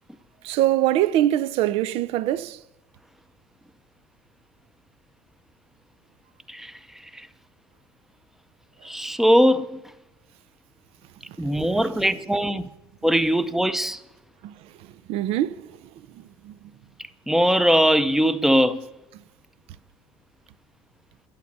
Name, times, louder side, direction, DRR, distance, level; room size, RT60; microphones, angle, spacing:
voice 1, 0.4-2.6 11.7-11.8 14.4-14.5 15.1-15.8 16.1-16.5, right 13 dB, 65° right, 0.6 m, -23 dB
voice 2, 8.8-9.8 11.4-12.7 13.0-14.0 17.3-18.9, equal, 5° right, 0.6 m, -20 dB
12.0 x 11.5 x 5.3 m
cardioid pair, 140°, 11 cm